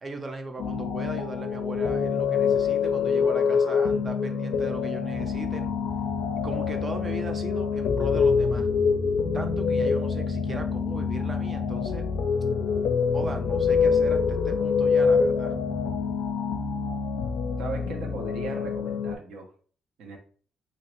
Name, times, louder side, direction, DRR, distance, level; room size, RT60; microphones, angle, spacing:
voice 1, 0.0-5.7 6.4-8.7 9.3-12.1 13.1-15.6, right 2 dB, 35° right, 6 dB, 0.6 m, -38 dB
sound 1, 0.6-19.1, left 5 dB, 85° left, 0.4 m, -26 dB
sound 2, 5.1-16.1, left 3 dB, 40° left, 0.6 m, -36 dB
voice 2, 17.6-19.5 20.0-20.2, right 3 dB, 85° right, 2 dB, 0.8 m, -37 dB
3.0 x 2.8 x 3.0 m, 0.43 s
cardioid pair, 90°, 0 cm